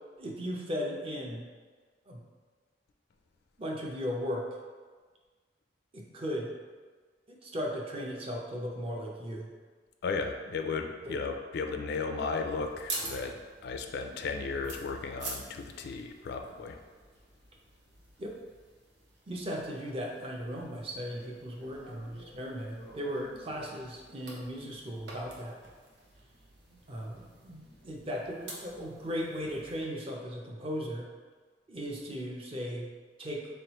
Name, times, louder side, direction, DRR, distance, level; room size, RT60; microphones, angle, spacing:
voice 1, 0.2-1.5 2.1-2.2 3.6-4.5 5.9-6.5 7.3-9.5 11.0-11.2 18.2-18.4 19.3-25.6 26.9-31.1 31.7-32.9 33.2-33.5, equal, 30° right, 0 dB, 0.5 m, -37 dB
voice 2, 10.0-13.3 13.6-16.8, left 4 dB, 60° left, 5 dB, 0.3 m, -35 dB
sound 1, 12.4-29.8, right 2 dB, 70° right, 0.8 m, -47 dB
3.8 x 3.2 x 2.9 m, 1.5 s
head